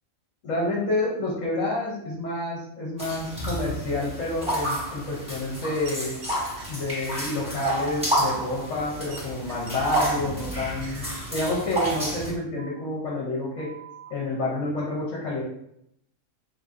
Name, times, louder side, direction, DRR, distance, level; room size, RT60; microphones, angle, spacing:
voice 1, 0.4-6.2 6.7-11.1 11.3-13.7 14.1-15.4, left 2 dB, 65° left, -5 dB, 1.1 m, -29 dB
sound 1, 3.0-12.3, right 1 dB, 5° right, 0.9 m, -30 dB
sound 2, 5.8-6.7 7.4-10.1 10.4-10.5 10.8-11.2 11.6-11.7, right 3 dB, 85° right, 1.2 m, -45 dB
sound 3, 8.6-8.7 9.6-9.7 10.6-10.7 11.6-11.7 12.6-12.7 13.6-14.1, right 6 dB, 30° right, 0.6 m, -45 dB
3.3 x 2.6 x 2.4 m, 0.75 s
omnidirectional pair, 1.5 m